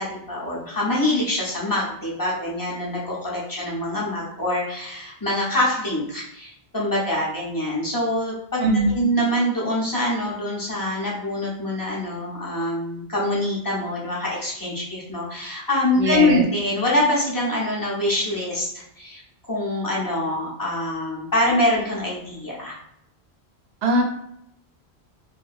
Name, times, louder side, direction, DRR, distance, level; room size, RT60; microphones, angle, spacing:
voice 1, 0.0-22.7, left 1 dB, 25° left, -5 dB, 0.5 m, -25 dB
voice 2, 8.6-9.0 15.9-16.4 23.8-24.0, right 1 dB, 75° right, 2 dB, 0.8 m, -21 dB
2.7 x 2.2 x 2.3 m, 0.75 s
omnidirectional pair, 1.1 m